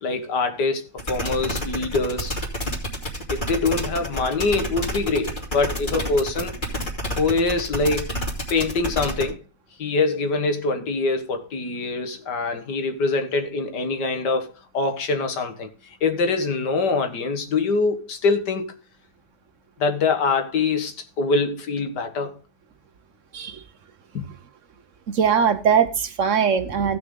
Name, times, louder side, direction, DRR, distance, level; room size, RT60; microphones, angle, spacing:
voice 1, 0.0-2.3 3.3-6.5 7.1-8.1 8.5-9.4 9.8-18.7 19.8-22.4 24.1-24.3, left 3 dB, 90° left, 2.0 m, -24 dB
sound 1, 1.0-9.2, equal, 30° left, 2.6 m, -28 dB
voice 2, 25.1-27.0, right 7 dB, 55° right, 1.0 m, -20 dB
15.5 x 6.1 x 3.7 m
omnidirectional pair, 1.8 m